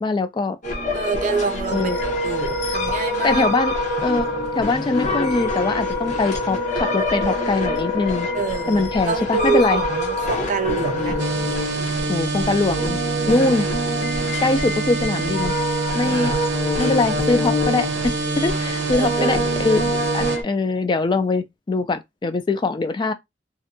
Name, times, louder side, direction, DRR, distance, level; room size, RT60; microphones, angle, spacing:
voice 1, 0.0-0.6 1.7-2.0 3.2-3.7 4.0-4.3 4.6-8.3 8.7-9.8 12.1-13.0 13.3-13.7 14.4-15.5 15.9-16.3 16.8-23.1, left 3 dB, 25° left, 0.3 m, -22 dB
sound 1, 0.6-20.4, left 1 dB, 45° left, 0.8 m, -27 dB
voice 2, 0.9-3.4 8.3-11.2 13.2-13.6 16.0-16.4 18.9-19.5, right 5 dB, 45° right, 0.4 m, -27 dB
Wind instrument woodwind instrument, 1.6-11.7, left 1 dB, 90° left, 0.9 m, -27 dB
sound 2, 11.2-20.4, right 4 dB, 90° right, 0.6 m, -26 dB
2.6 x 2.1 x 2.6 m
head